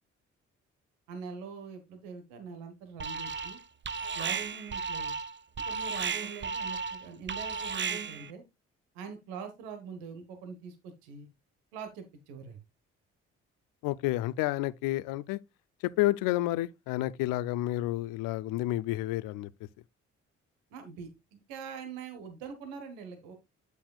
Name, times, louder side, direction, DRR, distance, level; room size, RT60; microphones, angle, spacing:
voice 1, 1.1-3.6 4.1-5.1 5.6-8.4 8.9-11.3 11.7-12.6 20.7-23.3, right 5 dB, 80° right, 1.4 m, -43 dB
Alarm, 3.0-3.6 3.8-8.3, right 5 dB, 35° right, 0.8 m, -34 dB
voice 2, 13.8-15.4 16.0-19.5, left 16 dB, 75° left, 0.6 m, -30 dB
8.4 x 8.2 x 2.4 m
hypercardioid pair, 45°, 34 cm